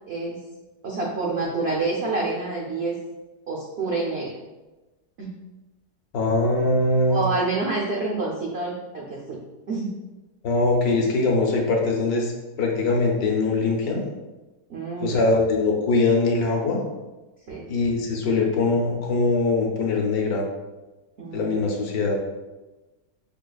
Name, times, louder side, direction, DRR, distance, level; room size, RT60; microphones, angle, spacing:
voice 1, 0.1-0.4 0.8-2.9 3.5-4.3 5.2-5.3 7.1-9.2 9.7-9.9 14.7-15.3 17.5-17.7 21.2-21.7, right 3 dB, 80° right, -3 dB, 0.5 m, -27 dB
voice 2, 6.1-7.2 10.4-12.3 12.6-14.1 15.0-16.8 17.7-20.4 21.3-22.2, left 3 dB, 70° left, 0 dB, 1.1 m, -22 dB
5.3 x 2.4 x 2.3 m, 1.1 s
omnidirectional pair, 1.8 m